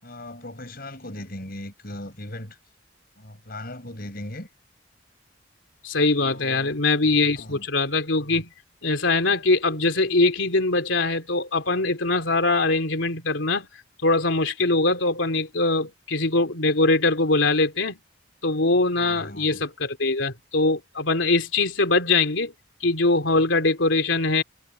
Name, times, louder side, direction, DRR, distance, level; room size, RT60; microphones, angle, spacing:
voice 1, 0.0-2.6 3.2-4.5 6.2-6.8 7.4-7.7 19.0-19.6, left 1 dB, 50° left, 7.6 m, -38 dB
voice 2, 5.8-8.5 8.8-13.7 14.0-18.0 18.4-22.5 22.8-24.4, left 3 dB, 80° left, 3.2 m, -22 dB
head